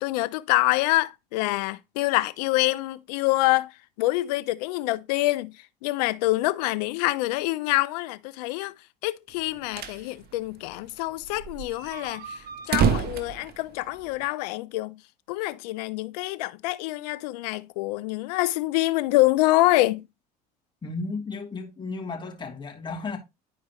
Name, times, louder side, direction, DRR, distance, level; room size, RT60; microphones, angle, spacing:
voice 1, 0.0-3.7 4.0-5.5 5.8-8.7 9.0-15.0 15.3-20.0, left 19 dB, 80° left, 0.6 m, -26 dB
sound 1, 9.4-10.0 10.4-10.5 10.7-10.8 11.2-14.2, right 6 dB, 50° right, 1.3 m, -28 dB
voice 2, 20.8-23.2, left 3 dB, 25° left, 2.9 m, -34 dB
11.0 x 4.7 x 3.0 m
hypercardioid pair, 75°, 20 cm